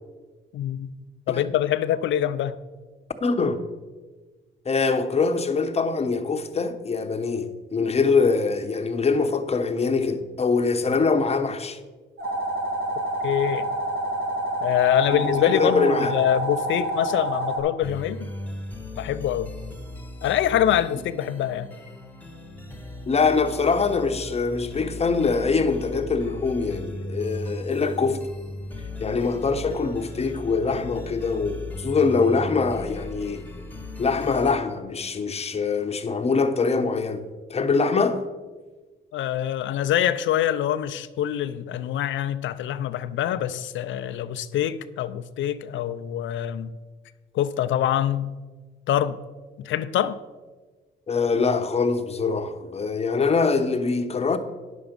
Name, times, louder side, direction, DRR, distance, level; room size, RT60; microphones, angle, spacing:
voice 1, 0.5-2.6 13.2-13.7 14.6-18.3 19.0-19.5 20.2-21.7 39.1-46.7 47.3-48.3 48.9-49.2 49.6-50.2, left 11 dB, 75° left, 0.5 m, -25 dB
voice 2, 3.2-3.6 4.6-11.8 15.1-16.1 23.1-28.2 29.0-33.4 34.0-38.2 51.1-54.4, left 4 dB, 30° left, 0.9 m, -23 dB
sound 1, 12.2-17.6, right 1 dB, 55° right, 2.9 m, -28 dB
sound 2, 17.8-34.5, left 2 dB, 10° left, 1.2 m, -37 dB
9.9 x 7.1 x 5.2 m
cardioid pair, 90°, 20 cm